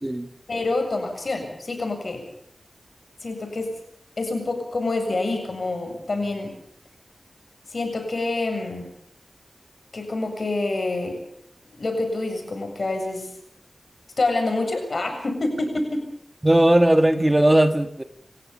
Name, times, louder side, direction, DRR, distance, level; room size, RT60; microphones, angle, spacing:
voice 1, 0.5-2.3 3.2-3.7 4.2-6.6 7.7-8.9 9.9-11.2 11.7-13.3 14.2-16.0, left 2 dB, 65° left, 7.5 m, -27 dB
voice 2, 16.4-18.0, right 1 dB, 20° right, 1.8 m, -18 dB
29.0 x 15.5 x 7.1 m
wide cardioid pair, 65°, 0 cm